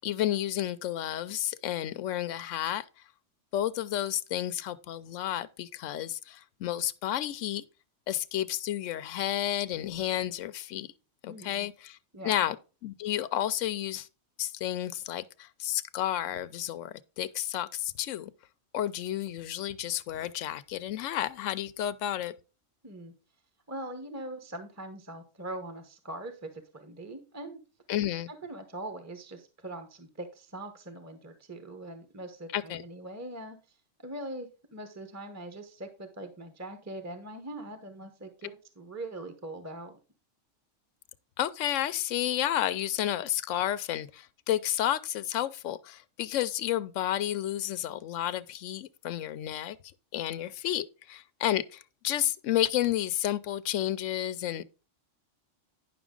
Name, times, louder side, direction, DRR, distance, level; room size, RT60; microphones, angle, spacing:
voice 1, 0.0-2.8 3.5-7.6 8.1-10.9 11.2-12.0 12.2-12.6 12.8-14.1 14.4-18.3 18.7-22.3 27.9-28.3 32.5-32.8 41.4-49.8 50.1-54.6, left 12 dB, 90° left, 0.9 m, -31 dB
voice 2, 11.3-11.7 12.1-12.4 22.8-23.1 23.7-27.6 28.3-33.6 34.0-40.0, right 1 dB, 15° right, 1.0 m, -42 dB
10.0 x 6.0 x 3.7 m
omnidirectional pair, 1.3 m